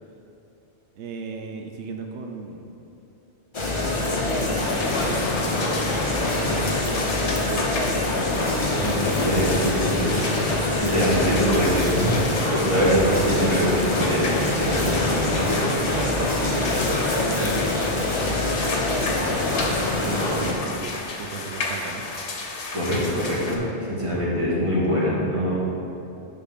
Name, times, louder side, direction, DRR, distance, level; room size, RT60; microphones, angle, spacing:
voice 1, 0.9-2.7 3.9-5.8 6.5-8.2 10.7-11.3 15.9-18.9 19.1-19.5 20.0-22.0, right 5 dB, 90° right, 3 dB, 0.9 m, -36 dB
sound 1, 3.5-20.5, left 2 dB, 30° left, 0.8 m, -24 dB
sound 2, 4.6-23.6, left 3 dB, 90° left, 1.3 m, -33 dB
voice 2, 8.7-10.1 10.8-12.1 12.5-15.6 22.7-25.6, equal, 30° right, -7 dB, 1.9 m, -23 dB
10.0 x 3.8 x 5.7 m, 2.8 s
omnidirectional pair, 1.1 m